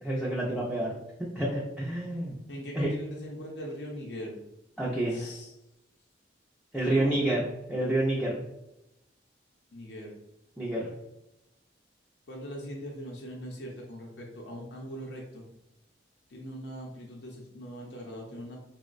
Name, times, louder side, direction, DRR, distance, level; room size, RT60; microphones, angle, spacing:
voice 1, 0.0-1.0 1.4-2.3 2.7-2.9 4.8-5.3 6.7-8.4 10.6-10.9, right 1 dB, ahead, -6 dB, 0.4 m, -29 dB
voice 2, 2.5-4.4 5.1-5.5 6.9-7.3 9.7-10.1 12.3-15.5 16.3-18.6, equal, 60° left, -1 dB, 0.5 m, -41 dB
3.7 x 2.0 x 2.4 m, 0.89 s
head